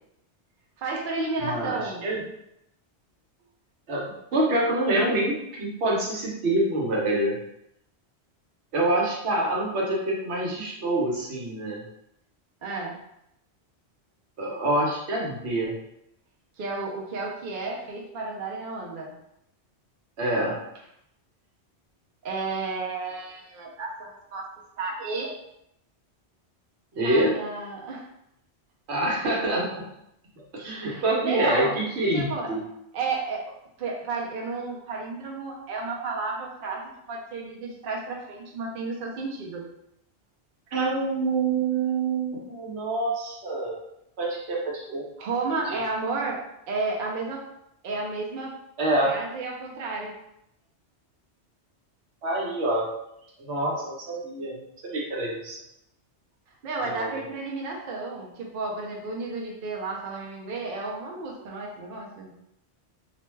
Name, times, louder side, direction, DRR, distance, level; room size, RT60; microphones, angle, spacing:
voice 1, 0.8-2.1 12.6-13.0 16.6-19.1 22.2-24.5 24.8-25.4 27.0-28.1 30.7-31.7 32.1-32.6 32.9-33.5 33.8-39.6 45.2-46.4 46.7-47.5 47.8-48.6 49.0-50.2 56.6-62.3, right 3 dB, 60° right, -1 dB, 0.6 m, -32 dB
voice 2, 1.4-2.2 3.9-4.0 4.3-7.4 8.7-11.8 14.4-15.8 20.2-20.6 26.9-27.3 28.9-29.9 30.5-32.6 40.7-43.8 44.2-44.6 44.9-45.0 45.5-45.8 48.8-49.1 52.2-52.8 53.4-55.6 56.9-57.1, right 2 dB, 75° right, -3 dB, 1.0 m, -26 dB
2.5 x 2.1 x 3.0 m, 0.79 s
omnidirectional pair, 1.1 m